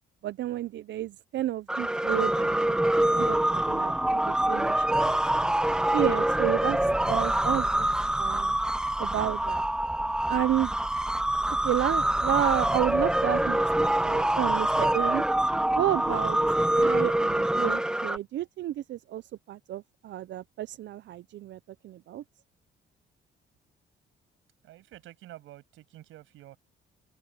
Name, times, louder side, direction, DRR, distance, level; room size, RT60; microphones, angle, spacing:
voice 1, 0.2-3.9 4.4-5.2 5.9-7.9 8.2-8.6 9.0-9.6 10.3-10.7 11.6-15.2 15.8-16.4 16.7-22.2, right 13 dB, 65° right, 0.5 m, -31 dB
sound 1, 1.7-18.2, right 1 dB, 5° right, 0.3 m, -25 dB
voice 2, 24.6-26.6, right 15 dB, 90° right, 6.5 m, -49 dB
open air
cardioid pair, 90°, 20 cm